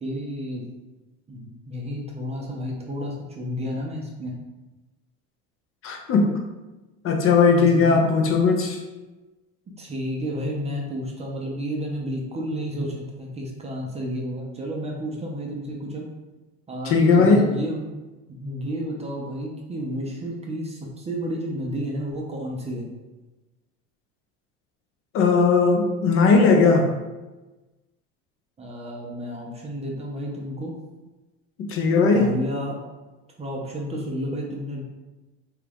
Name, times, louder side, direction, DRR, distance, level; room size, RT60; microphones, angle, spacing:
voice 1, 0.0-0.6 1.3-4.3 7.5-8.0 9.8-16.1 16.7-17.8 18.3-22.9 28.6-30.8 32.1-32.8 33.4-34.8, equal, 20° right, -1 dB, 0.4 m, -31 dB
voice 2, 5.8-6.3 7.0-8.8 16.9-17.5 25.1-26.9 31.6-32.3, left 4 dB, 40° left, 2 dB, 0.5 m, -18 dB
3.0 x 2.3 x 3.4 m, 1.1 s
supercardioid pair, 125°, 34 cm